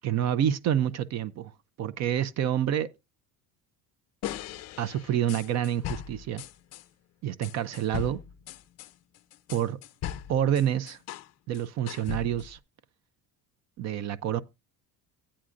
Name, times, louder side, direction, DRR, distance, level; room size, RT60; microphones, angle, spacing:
voice 1, 0.0-1.5 1.8-2.9 4.8-6.4 7.2-8.2 9.5-9.8 10.3-11.0 11.5-12.6 13.8-14.4, right 10 dB, 45° right, 0.5 m, -28 dB
sound 1, 4.2-6.8 7.4-11.3 11.5-12.6, left 11 dB, 45° left, 0.5 m, -39 dB
14.0 x 8.6 x 2.5 m
cardioid pair, 160°, 38 cm